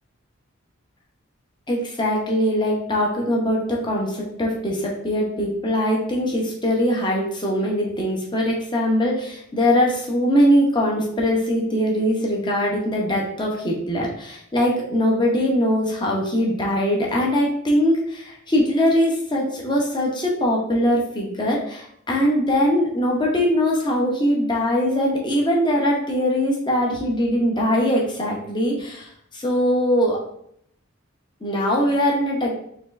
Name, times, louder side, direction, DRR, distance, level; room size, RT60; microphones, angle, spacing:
voice 1, 1.7-30.2 31.4-32.5, equal, 20° left, -2 dB, 0.8 m, -21 dB
4.3 x 3.0 x 2.5 m, 0.69 s
head